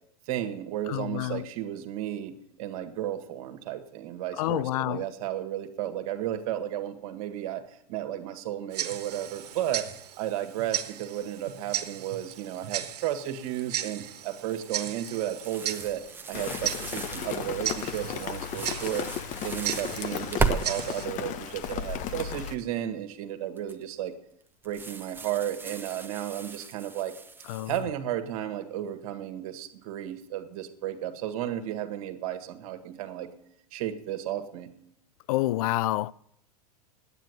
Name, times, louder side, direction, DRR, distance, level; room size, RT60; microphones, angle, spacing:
voice 1, 0.3-9.9 10.2-16.0 16.3-19.0 19.4-24.1 24.6-27.1 27.7-33.3 33.7-34.7, right 11 dB, 65° right, 1.7 m, -33 dB
voice 2, 0.9-1.4 4.4-5.0 27.5-27.7 35.3-36.1, left 16 dB, 65° left, 0.4 m, -28 dB
Tick-tock, 8.7-21.1, right 11 dB, 80° right, 1.4 m, -37 dB
sound 1, 14.5-20.6 21.1-21.7 23.6-23.9 24.6-27.8, right 5 dB, 10° right, 1.0 m, -36 dB
Rain, 16.3-22.6, left 9 dB, 40° left, 0.9 m, -35 dB
9.2 x 9.2 x 9.1 m
hypercardioid pair, 110°, 20 cm